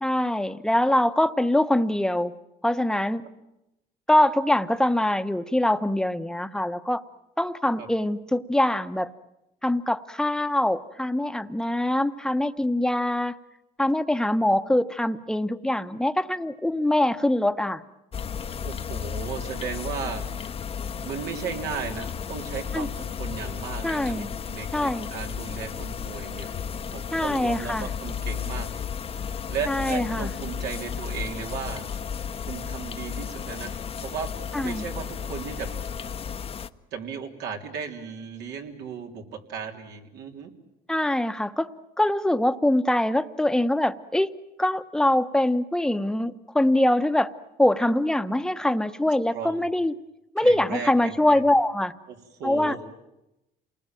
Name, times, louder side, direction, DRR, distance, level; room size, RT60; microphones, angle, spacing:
voice 1, 0.0-2.3 2.6-3.2 4.1-7.0 7.4-9.1 9.6-13.4 13.8-17.8 22.7-22.9 23.8-24.3 24.7-25.1 27.1-27.9 29.7-30.3 34.5-34.9 40.9-41.7 42.0-44.3 44.6-47.3 47.6-49.9 50.3-51.9 52.4-52.8, left 1 dB, 5° left, 10 dB, 1.0 m, -23 dB
sound 1, 18.1-36.7, left 7 dB, 35° left, 0.9 m, -34 dB
voice 2, 18.6-20.2 21.0-26.5 26.9-28.7 29.1-31.9 32.5-34.3 34.6-35.7 36.9-40.5 49.3-49.7 50.4-51.4 52.1-52.8, right 6 dB, 80° right, 3 dB, 3.5 m, -36 dB
28.5 x 20.0 x 9.1 m, 0.91 s
cardioid pair, 110°, 17 cm